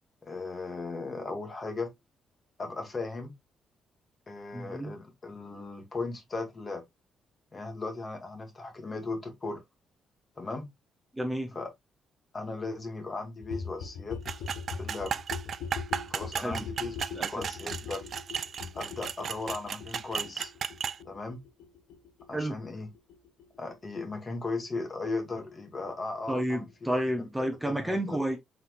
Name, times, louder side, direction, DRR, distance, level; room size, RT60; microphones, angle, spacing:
voice 1, 0.2-1.9 2.6-3.3 4.3-6.8 7.5-9.6 10.4-10.7 11.5-11.7 12.3-14.2 14.8-15.2 16.1-18.0 18.7-20.5 21.0-21.4 22.3-22.9 23.6-27.3 27.6-28.2, left 3 dB, 30° left, 1.6 m, -37 dB
voice 2, 4.5-4.9 11.1-11.6 16.4-16.7 17.1-17.5 22.3-22.6 26.3-28.4, right 1 dB, 10° right, 1.0 m, -31 dB
sound 1, 13.4-24.9 25.2-25.3 25.5-25.6 25.8-25.9 26.1-26.2 26.4-26.5 26.7-26.8, left 5 dB, 85° left, 1.0 m, -42 dB
sound 2, 14.2-21.0, right 7 dB, 55° right, 0.3 m, -35 dB
4.2 x 4.2 x 2.5 m
cardioid pair, 90°, 0 cm